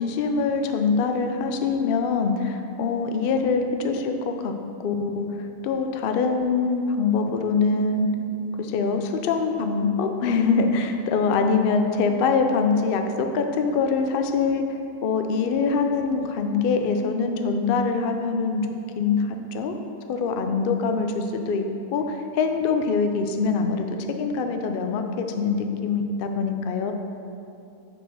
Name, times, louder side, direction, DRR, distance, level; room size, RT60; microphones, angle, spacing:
voice 1, 0.0-4.5 4.8-8.1 8.6-18.7 18.9-19.8 20.1-23.9 24.2-26.9, left 4 dB, 65° left, 5 dB, 0.5 m, -24 dB
6.1 x 4.9 x 6.2 m, 2.7 s
omnidirectional pair, 1.6 m